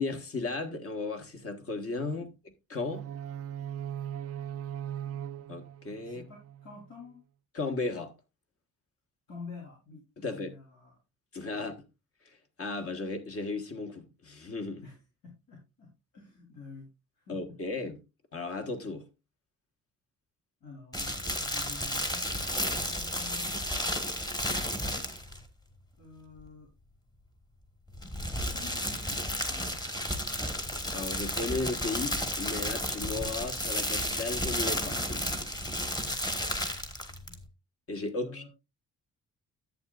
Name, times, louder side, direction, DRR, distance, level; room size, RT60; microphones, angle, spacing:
voice 1, 0.0-2.3 2.7-3.1 5.5-6.2 7.5-8.1 10.2-10.5 11.3-11.9 12.2-14.8 17.3-18.0 18.3-19.1 30.9-35.6 37.9-38.4, left 3 dB, 40° left, 1.4 m, -35 dB
sound 1, 2.9-6.9, right 10 dB, 45° right, 0.4 m, -39 dB
voice 2, 6.0-7.2 9.3-10.9 11.5-11.6 14.8-16.9 17.2-17.6 20.6-23.6 26.0-26.7 28.4-29.8 36.1-36.2 36.5-36.7 37.3-37.4 38.2-38.5, left 4 dB, 80° left, 3.3 m, -48 dB
sound 2, 20.9-25.4 27.9-37.4, equal, 10° left, 1.3 m, -32 dB
11.0 x 8.2 x 2.4 m
cardioid pair, 145°, 34 cm